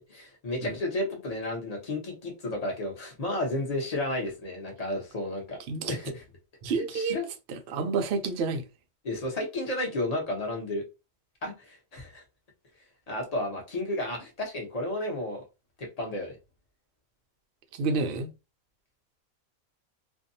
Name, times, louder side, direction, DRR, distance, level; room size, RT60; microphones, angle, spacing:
voice 1, 0.0-5.6 5.9-6.2 6.7-7.3 9.0-10.8 11.4-12.2 13.1-15.4 15.8-16.4, left 1 dB, 35° left, 0.7 m, -32 dB
voice 2, 6.6-7.2 7.5-8.6 17.8-18.3, right 4 dB, 70° right, 0.6 m, -29 dB
2.6 x 2.2 x 2.6 m
omnidirectional pair, 1.5 m